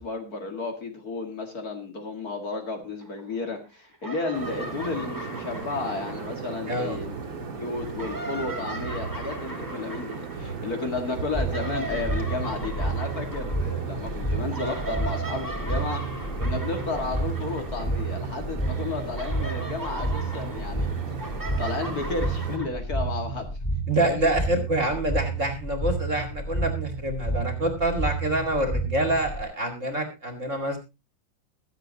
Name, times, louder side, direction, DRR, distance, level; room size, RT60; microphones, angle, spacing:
voice 1, 0.0-21.3 21.6-23.5 24.0-24.3, left 3 dB, 50° left, 4 dB, 2.5 m, -33 dB
sound 1, 3.0-3.7 3.9-7.2 7.7-18.3 18.6-22.7, right 2 dB, 10° right, 1.3 m, -39 dB
sound 2, 4.3-22.6, right 5 dB, 75° right, 2.7 m, -37 dB
voice 2, 6.7-7.0 23.9-30.8, right 1 dB, 35° right, 5 dB, 2.5 m, -26 dB
sound 3, 11.3-29.4, right 2 dB, 15° left, 4.2 m, -30 dB
23.0 x 7.9 x 2.9 m, 0.26 s
omnidirectional pair, 2.2 m